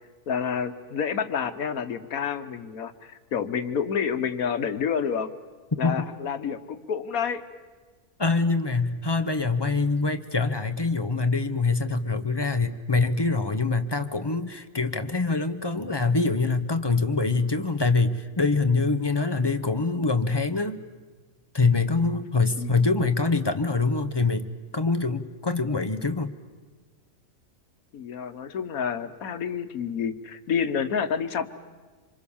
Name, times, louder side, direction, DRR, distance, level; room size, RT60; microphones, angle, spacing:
voice 1, 0.3-5.3 5.8-7.4 22.6-22.7 27.9-31.5, left 7 dB, 90° left, 10 dB, 1.5 m, -29 dB
voice 2, 8.2-20.8 21.5-24.5 24.7-26.3, left 3 dB, 20° left, 7 dB, 0.8 m, -24 dB
26.5 x 25.0 x 7.1 m, 1.3 s
omnidirectional pair, 1.4 m